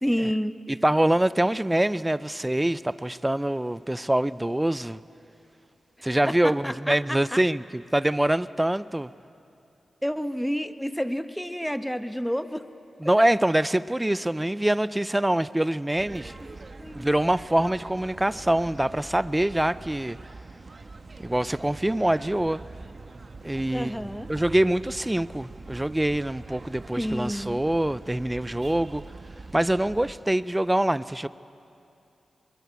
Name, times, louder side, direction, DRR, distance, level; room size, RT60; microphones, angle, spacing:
voice 1, 0.0-0.5 6.3-7.4 10.0-12.6 13.2-13.3 16.8-17.1 23.7-24.3 26.9-27.6, equal, 5° left, 1.1 m, -29 dB
voice 2, 0.7-5.0 6.0-9.1 13.0-16.3 17.0-20.2 21.2-22.6 23.4-24.0 24.3-29.0 29.5-31.3, right 1 dB, 15° right, 0.5 m, -24 dB
sound 1, 16.0-30.1, right 3 dB, 50° right, 1.4 m, -44 dB
22.0 x 21.5 x 8.2 m
cardioid pair, 45°, 0 cm